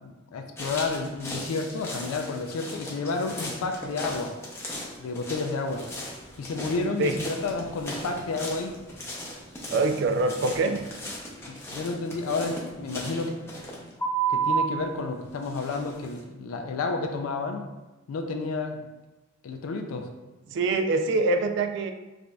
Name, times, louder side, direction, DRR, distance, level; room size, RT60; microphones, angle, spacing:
voice 1, 0.0-4.4 5.0-5.9 6.4-8.8 11.5-13.7 14.3-17.6 18.1-18.8 19.4-20.1, left 3 dB, 85° left, 4 dB, 0.4 m, -31 dB
sound 1, 0.6-14.8 15.4-16.2, right 3 dB, 10° left, 0.6 m, -36 dB
voice 2, 9.7-10.8 20.5-21.9, right 3 dB, 60° right, 6 dB, 0.3 m, -24 dB
4.8 x 2.6 x 2.2 m, 1.1 s
head